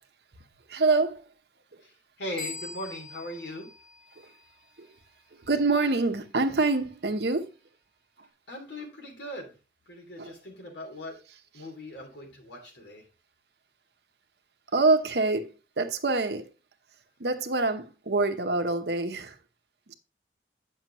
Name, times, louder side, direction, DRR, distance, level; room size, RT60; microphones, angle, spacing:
voice 1, 0.7-1.3 1.7-1.8 4.2-4.3 4.8-4.9 5.3-7.5 10.2-10.3 14.7-16.5 17.2-19.4 19.9-20.0, right 3 dB, 70° right, 1.0 m, -26 dB
voice 2, 1.8-3.7 8.5-9.5 9.9-11.2 11.5-13.0, left 1 dB, 85° left, 3.1 m, -39 dB
sound 1, 2.4-4.9, left 3 dB, ahead, 2.6 m, -43 dB
9.2 x 6.5 x 3.0 m
head